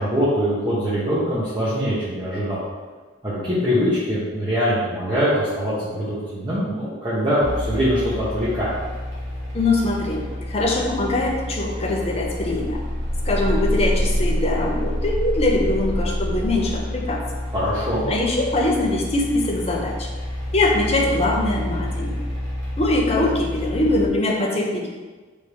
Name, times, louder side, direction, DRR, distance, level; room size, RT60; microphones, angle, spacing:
voice 1, 0.0-2.6 3.2-8.8 17.5-18.1, equal, 25° right, -12 dB, 0.9 m, -23 dB
sound 1, 7.4-24.1, equal, 70° right, 1.2 m, -28 dB
voice 2, 9.5-10.2 10.5-12.8 13.3-17.2 18.1-20.1 20.5-22.2 22.8-24.9, left 2 dB, 30° left, -1 dB, 0.6 m, -22 dB
3.4 x 2.7 x 4.6 m, 1.4 s
head